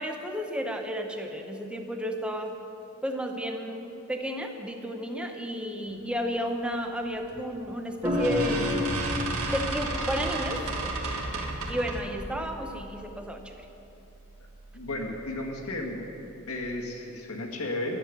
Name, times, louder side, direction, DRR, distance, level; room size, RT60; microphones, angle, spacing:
voice 1, 0.0-2.5 3.0-8.9 9.5-10.7 11.7-13.7, equal, 5° right, 4 dB, 0.8 m, -32 dB
sound 1, 7.3-7.6 8.1-12.1, right 2 dB, 75° right, 1.8 m, -32 dB
sound 2, 8.0-16.6, left 2 dB, 20° right, 1.2 m, -36 dB
voice 2, 14.7-16.0 16.5-18.0, left 2 dB, 80° left, 1 dB, 1.7 m, -33 dB
11.5 x 7.6 x 9.2 m, 3.0 s
head